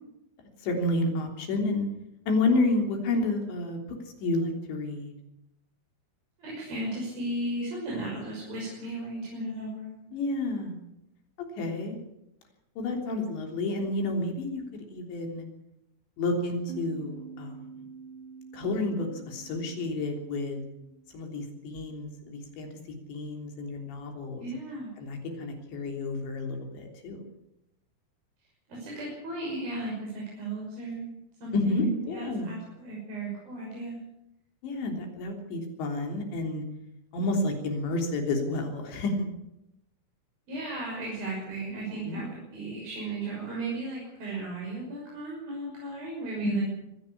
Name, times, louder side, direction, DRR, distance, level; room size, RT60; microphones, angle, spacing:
voice 1, 0.6-1.9 2.3-3.8 4.2-5.1 10.1-10.8 11.6-12.0 12.8-15.5 16.2-17.7 18.5-20.6 21.1-22.7 23.1-24.5 25.0-27.2 31.5-32.5 34.6-36.6 37.1-39.1 42.1-42.2 46.4-46.6, left 2 dB, 65° left, 3 dB, 5.5 m, -30 dB
voice 2, 6.4-10.1 24.4-24.9 28.7-31.1 31.4-34.0 40.5-46.6, right 2 dB, 45° right, -3 dB, 7.8 m, -35 dB
sound 1, 16.7-22.0, right 6 dB, 85° right, 6.6 m, -47 dB
22.5 x 16.0 x 8.6 m, 0.87 s
omnidirectional pair, 5.7 m